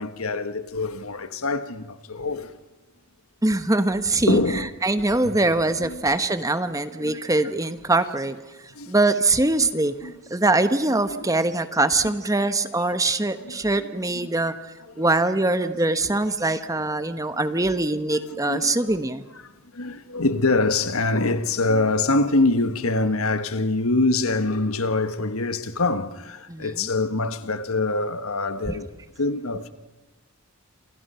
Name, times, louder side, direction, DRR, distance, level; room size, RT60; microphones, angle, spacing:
voice 1, 0.0-2.6 4.3-4.7 5.2-5.4 5.8-6.1 7.0-7.2 8.7-8.9 9.6-9.7 10.0-10.1 11.1-11.4 13.4-13.6 14.9-15.0 15.9-16.1 18.3-19.0 19.7-28.9 29.2-29.7, left 2 dB, 85° left, 1.5 m, -25 dB
voice 2, 3.4-4.4 4.8-8.4 8.9-14.5 15.0-19.2 26.5-26.9, right 2 dB, 15° right, 1.1 m, -23 dB
28.5 x 27.0 x 5.7 m
head